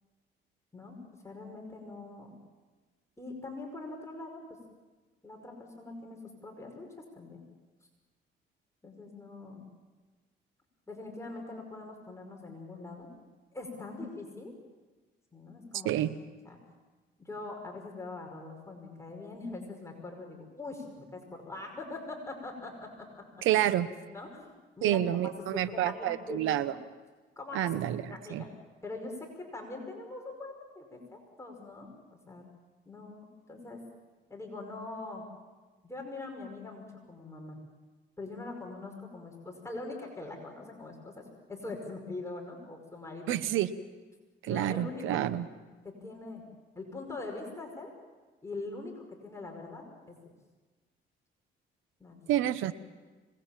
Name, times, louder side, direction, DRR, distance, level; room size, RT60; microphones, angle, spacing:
voice 1, 1.2-2.3 3.2-4.6 5.2-7.4 8.8-9.6 10.9-13.1 13.5-14.5 15.3-15.9 16.5-16.6 17.2-23.3 24.1-25.0 25.4-26.6 27.4-27.7 28.1-28.5 28.8-31.9 32.3-32.4 32.9-33.8 34.3-35.2 35.8-37.6 38.2-43.3 44.5-45.2 45.8-46.4 46.8-47.9 48.4-50.3 52.0-52.2, left 2 dB, 15° left, 1 dB, 5.4 m, -43 dB
voice 2, 15.8-16.2 23.4-23.9 24.8-26.7 27.5-28.4 43.3-43.7 44.4-45.5 52.3-52.7, right 12 dB, 90° right, 14 dB, 1.0 m, -28 dB
26.0 x 20.0 x 7.4 m, 1.3 s
cardioid pair, 90°, 20 cm